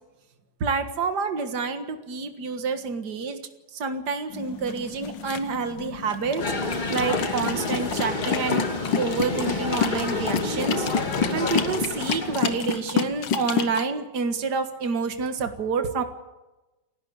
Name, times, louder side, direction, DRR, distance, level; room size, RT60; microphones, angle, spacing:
voice 1, 0.6-3.4 3.7-8.7 9.0-16.0, right 5 dB, 60° right, 7 dB, 2.2 m, -28 dB
sound 1, 4.3-13.8, left 7 dB, 70° left, 1.8 m, -30 dB
sound 2, 6.4-12.6, left 2 dB, 25° left, 1.9 m, -29 dB
29.5 x 11.5 x 8.1 m, 1.1 s
omnidirectional pair, 2.1 m